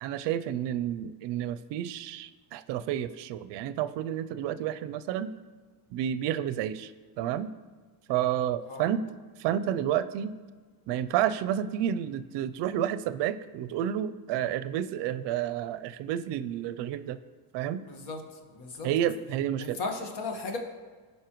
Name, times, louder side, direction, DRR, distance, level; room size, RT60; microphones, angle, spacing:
voice 1, 0.0-5.3 5.9-7.5 8.1-9.0 9.4-10.3 10.9-17.2 17.5-17.8 18.8-19.8, right 10 dB, 65° right, 13 dB, 0.5 m, -30 dB
voice 2, 17.9-19.1 19.6-20.6, left 3 dB, 60° left, 3 dB, 1.5 m, -36 dB
16.0 x 5.5 x 3.0 m, 1.4 s
cardioid pair, 105°, 46 cm